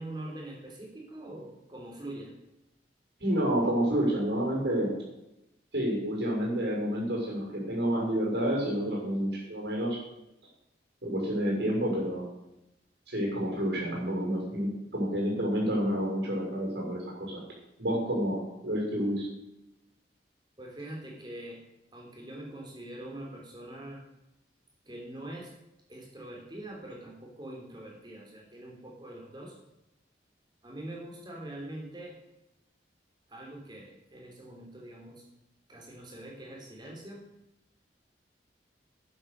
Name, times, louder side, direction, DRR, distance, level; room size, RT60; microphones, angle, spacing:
voice 1, 0.0-2.3 20.6-21.6 21.9-24.0 24.9-25.5 25.9-29.5 30.6-32.1 33.3-35.2 35.7-37.2, right 1 dB, 25° right, -1 dB, 3.8 m, -43 dB
voice 2, 3.2-4.9 5.7-10.0 11.0-12.2 13.1-17.4 17.8-19.3, equal, 75° right, -2 dB, 6.5 m, -29 dB
11.0 x 10.5 x 6.8 m, 0.89 s
head